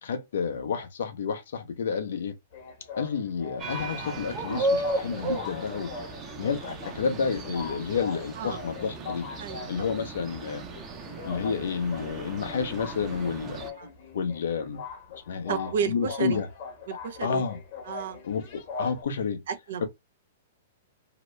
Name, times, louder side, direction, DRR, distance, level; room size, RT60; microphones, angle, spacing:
voice 1, 0.0-2.4 3.0-5.9 6.4-9.3 9.7-10.6 11.2-13.6 14.1-14.8 15.3-16.5 17.2-17.6 18.2-19.4, left 6 dB, 70° left, 0.7 m, -30 dB
sound 1, 2.5-19.0, left 5 dB, 55° left, 1.1 m, -42 dB
sound 2, 3.6-13.7, right 2 dB, 30° right, 0.8 m, -35 dB
voice 2, 9.4-9.7 13.5-13.9 15.5-16.4 16.9-17.4 17.9-18.2 19.5-19.9, right 7 dB, 70° right, 0.6 m, -32 dB
2.9 x 2.0 x 3.1 m
hypercardioid pair, 120°, 0 cm